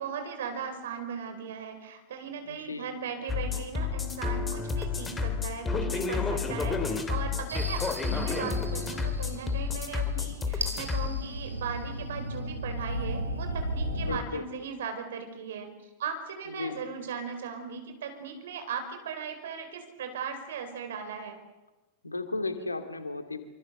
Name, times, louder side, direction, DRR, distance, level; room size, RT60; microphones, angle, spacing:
voice 1, 0.0-15.7 16.0-21.4, right 6 dB, 60° right, 6 dB, 5.3 m, -38 dB
voice 2, 2.4-2.9 14.0-14.4 16.5-16.8 22.0-23.4, left 3 dB, 80° left, 9 dB, 2.3 m, -35 dB
sound 1, 3.3-11.1, left 5 dB, 15° left, 3.0 m, -30 dB
sound 2, 7.5-14.2, right 1 dB, 80° right, 3.8 m, -36 dB
26.0 x 25.0 x 6.8 m, 1.1 s
figure-of-eight pair, 90°, 0 cm